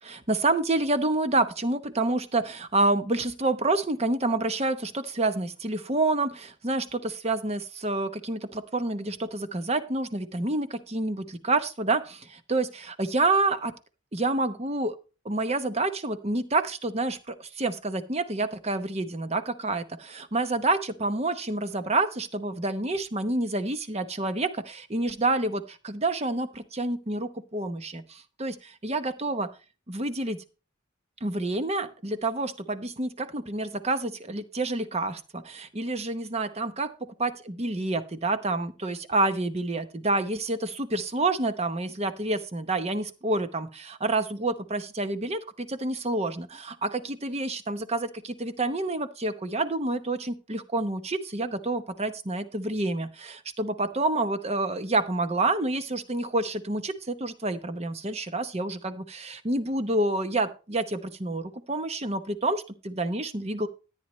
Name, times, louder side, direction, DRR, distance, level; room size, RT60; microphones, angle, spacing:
voice 1, 0.0-13.7 14.1-14.9 15.2-29.5 29.9-30.4 31.2-63.7, right 2 dB, 30° right, 10 dB, 0.9 m, -28 dB
13.5 x 9.1 x 3.1 m, 0.33 s
head